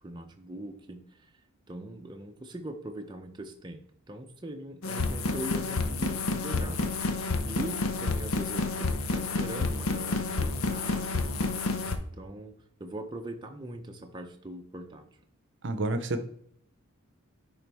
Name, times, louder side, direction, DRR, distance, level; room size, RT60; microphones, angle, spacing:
voice 1, 0.0-1.3 1.7-6.8 7.5-11.6 12.1-12.5 12.8-15.1, right 1 dB, 20° right, 3 dB, 0.6 m, -41 dB
sound 1, 4.8-12.0, left 3 dB, 75° left, 0.7 m, -29 dB
voice 2, 15.6-16.2, right 2 dB, 55° right, 9 dB, 0.7 m, -29 dB
10.0 x 3.8 x 3.4 m, 0.68 s
head